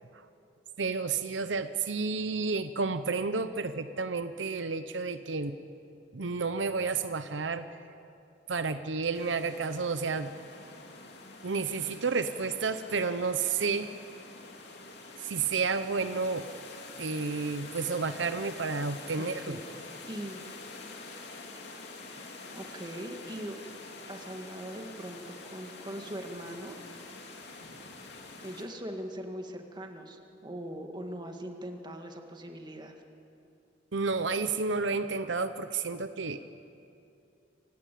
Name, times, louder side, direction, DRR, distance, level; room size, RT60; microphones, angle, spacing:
voice 1, 0.8-5.5 6.1-7.7 8.5-10.3 11.4-13.9 15.2-16.5 17.0-19.6 33.9-36.4, right 4 dB, 75° right, 11 dB, 0.8 m, -31 dB
sound 1, 9.1-28.6, left 3 dB, 60° left, 3.1 m, -46 dB
voice 2, 19.2-20.4 22.5-23.6 24.1-27.4 28.4-32.9, right 1 dB, 25° right, 4 dB, 1.9 m, -41 dB
27.5 x 17.0 x 8.5 m, 2.6 s
head